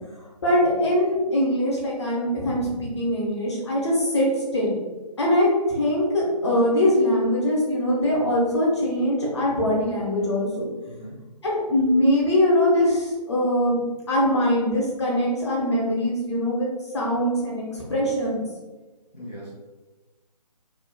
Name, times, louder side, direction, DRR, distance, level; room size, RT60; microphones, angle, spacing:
voice 1, 0.4-4.3 4.5-4.8 5.2-10.5 11.4-13.8 14.1-16.7 16.9-18.4, left 1 dB, 40° left, -4 dB, 0.9 m, -22 dB
voice 2, 19.1-19.5, equal, 5° right, -13 dB, 0.9 m, -39 dB
3.2 x 2.3 x 2.2 m, 1.2 s
figure-of-eight pair, 145°, 21 cm